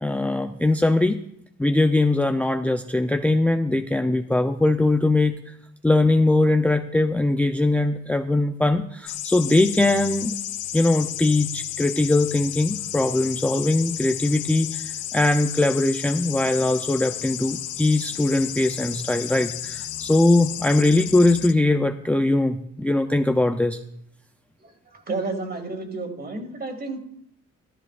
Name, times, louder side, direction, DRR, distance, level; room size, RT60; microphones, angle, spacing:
voice 1, 0.0-1.2 1.6-5.5 5.8-10.3 10.7-23.8, left 2 dB, 5° left, 6 dB, 0.6 m, -21 dB
sound 1, 9.1-21.5, left 13 dB, 80° left, 0.7 m, -33 dB
voice 2, 24.6-27.0, right 3 dB, 30° right, 4 dB, 2.5 m, -31 dB
14.0 x 13.5 x 2.5 m, 0.73 s
cardioid pair, 90°, 30 cm